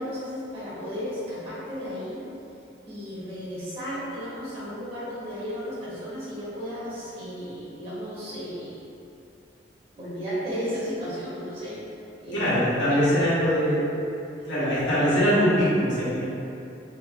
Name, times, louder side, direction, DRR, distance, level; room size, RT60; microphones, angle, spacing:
voice 1, 0.0-2.2 2.8-8.8 9.9-11.8 12.2-12.6 12.9-13.1, equal, 30° right, -11 dB, 1.4 m, -34 dB
voice 2, 12.3-13.9 14.5-16.3, equal, 85° left, -11 dB, 1.4 m, -22 dB
4.1 x 3.5 x 2.3 m, 2.8 s
head